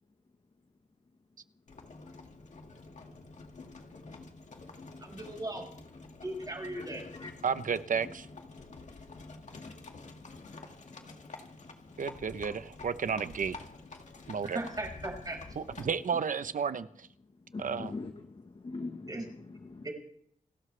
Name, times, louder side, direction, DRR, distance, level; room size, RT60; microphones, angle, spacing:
Livestock farm animals working animals, 1.7-16.1, left 3 dB, 55° left, 2.1 m, -48 dB
voice 1, 5.0-5.6 6.2-7.0 14.5-15.4 19.1-19.3 19.8-19.9, right 1 dB, 25° right, 2 dB, 5.2 m, -37 dB
voice 2, 7.4-8.3 12.0-13.6 14.3-14.6 15.6-17.1 17.6-17.9, right 6 dB, 70° right, 12 dB, 0.9 m, -32 dB
voice 3, 17.5-18.1 18.6-19.8, left 3 dB, 40° left, 5 dB, 1.3 m, -41 dB
30.0 x 12.5 x 3.4 m, 0.67 s
wide cardioid pair, 155°, 14 cm